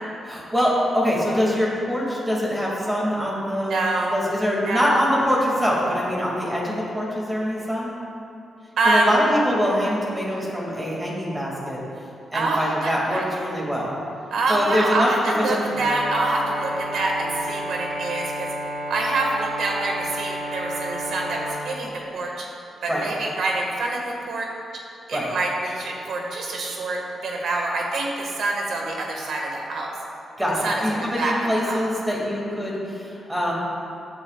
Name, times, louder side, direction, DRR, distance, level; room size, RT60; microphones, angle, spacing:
voice 1, 0.2-3.7 4.0-7.9 8.8-11.8 12.3-13.9 14.5-15.1 15.4-15.7 22.9-23.0 25.1-25.3 30.4-33.5, equal, 10° right, -4 dB, 2.4 m, -24 dB
voice 2, 3.6-4.1 4.6-5.0 8.8-9.1 12.3-13.5 14.3-18.5 18.9-22.5 22.8-24.5 25.1-29.9 30.6-31.3 31.7-31.8, right 2 dB, 70° right, -1 dB, 1.8 m, -26 dB
Brass instrument, 15.7-21.5, right 1 dB, 90° right, 2.3 m, -31 dB
15.0 x 9.7 x 2.5 m, 2.7 s
wide cardioid pair, 150°, 0 cm